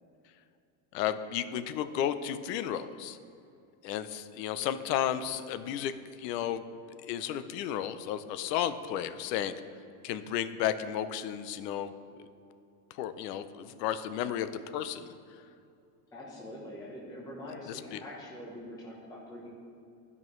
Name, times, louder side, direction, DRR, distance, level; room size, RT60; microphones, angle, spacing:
voice 1, 0.9-3.2 3.8-5.9 6.2-6.6 7.0-9.5 10.0-11.9 13.0-15.1 17.9-18.0, left 10 dB, 80° left, 12 dB, 0.6 m, -33 dB
voice 2, 16.1-19.5, left 1 dB, 10° left, -5 dB, 0.6 m, -44 dB
12.0 x 5.4 x 3.1 m, 2.6 s
supercardioid pair, 160°, 48 cm